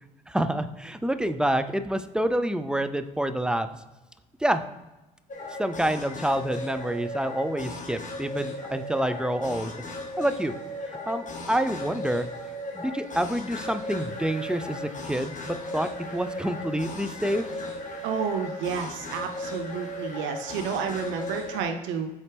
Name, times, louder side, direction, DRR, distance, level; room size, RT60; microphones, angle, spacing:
voice 1, 0.3-3.7 4.4-4.6 5.6-9.7 10.2-10.6 11.1-12.3 12.7-17.5, right 1 dB, 5° right, 10 dB, 0.6 m, -27 dB
sound 1, 5.3-21.6, left 1 dB, 40° left, 1.5 m, -36 dB
voice 2, 18.0-22.1, right 6 dB, 70° right, 6 dB, 0.6 m, -30 dB
8.0 x 4.2 x 3.4 m, 1.0 s
hypercardioid pair, 55°, 20 cm